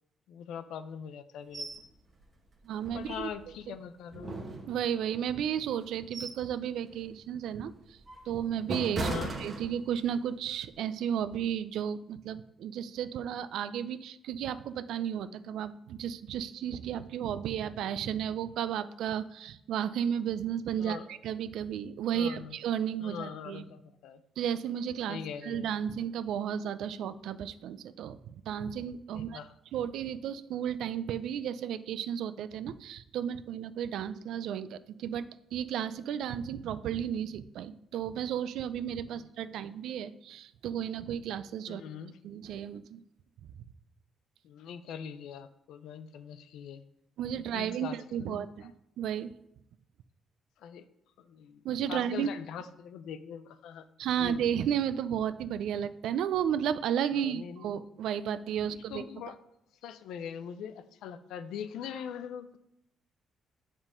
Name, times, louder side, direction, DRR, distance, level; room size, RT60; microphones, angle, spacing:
voice 1, 0.3-1.7 2.9-4.3 9.0-9.3 20.8-21.1 22.1-22.6 23.0-24.2 25.1-25.7 29.1-29.5 39.1-39.3 39.5-39.8 41.7-42.2 44.4-46.8 47.5-48.4 50.6-50.9 51.2-51.6 51.9-53.9 54.2-54.5 57.1-57.7 58.9-59.4 59.8-62.6, left 8 dB, 85° left, 12 dB, 0.5 m, -42 dB
sound 1, 1.5-1.8 2.2-2.3 2.8-3.6 4.1-5.1 5.7-6.5 6.9-7.2 7.7-10.2 10.5-10.7, right 2 dB, 40° right, 1.1 m, -38 dB
voice 2, 2.6-3.3 4.7-8.0 8.3-23.6 24.4-29.4 29.7-35.2 35.5-41.8 42.2-43.0 47.2-48.7 49.0-49.4 51.6-52.3 54.0-59.0, right 9 dB, 80° right, 14 dB, 0.4 m, -33 dB
7.3 x 3.7 x 5.0 m, 0.80 s
cardioid pair, 90°, 0 cm